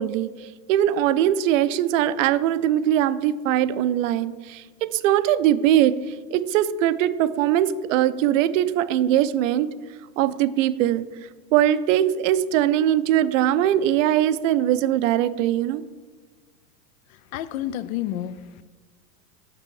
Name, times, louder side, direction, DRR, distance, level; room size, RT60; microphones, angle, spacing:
voice 1, 0.0-5.9 6.3-9.7 10.2-11.0 11.5-15.8, right 11 dB, 55° right, 0.5 m, -21 dB
voice 2, 17.3-18.6, left 12 dB, 65° left, 0.5 m, -30 dB
6.1 x 6.0 x 4.6 m
hypercardioid pair, 120°, 46 cm